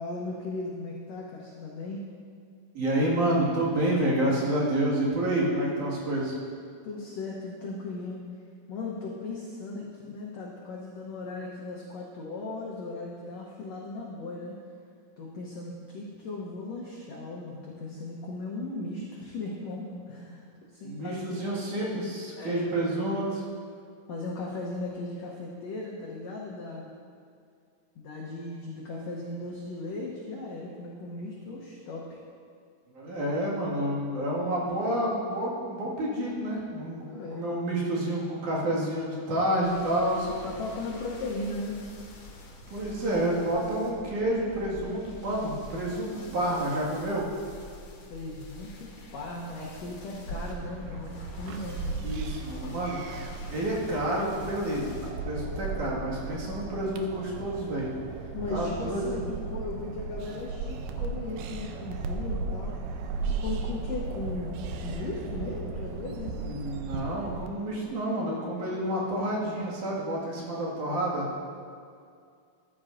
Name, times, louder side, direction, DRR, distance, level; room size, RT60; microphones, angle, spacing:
voice 1, 0.0-2.0 6.8-8.2 8.7-14.6 15.2-20.4 20.7-21.6 22.4-22.7 24.1-26.9 27.9-32.2 37.0-37.5 40.3-41.8 48.1-51.9 58.3-62.8 63.4-66.3 68.5-69.0, left 2 dB, 75° left, -3 dB, 1.5 m, -37 dB
voice 2, 2.7-6.4 20.8-23.4 32.9-37.0 37.3-40.3 42.7-47.3 52.0-53.2 53.5-57.9 58.5-59.2 66.3-71.3, right 1 dB, 60° right, -5 dB, 3.2 m, -29 dB
sound 1, 39.6-55.1, left 1 dB, 55° left, 1.7 m, -46 dB
sound 2, 50.3-67.5, right 4 dB, 80° right, 2.0 m, -36 dB
14.0 x 11.0 x 2.6 m, 2.3 s
omnidirectional pair, 4.4 m